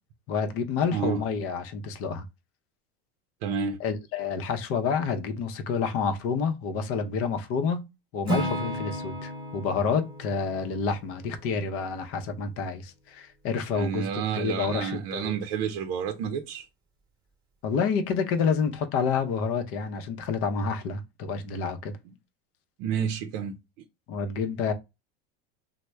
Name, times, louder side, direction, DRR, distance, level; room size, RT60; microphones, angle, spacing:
voice 1, 0.3-2.2 3.8-7.9 8.1-14.1 14.3-15.3 17.6-21.9 24.1-24.7, left 5 dB, 50° left, 0.7 m, -28 dB
voice 2, 0.9-1.2 3.4-3.8 13.7-16.7 22.8-23.5, right 7 dB, 70° right, 0.5 m, -30 dB
Acoustic guitar / Strum, 8.3-12.3, right 1 dB, 15° right, 1.0 m, -34 dB
3.1 x 2.1 x 3.3 m
supercardioid pair, 120°, 30 cm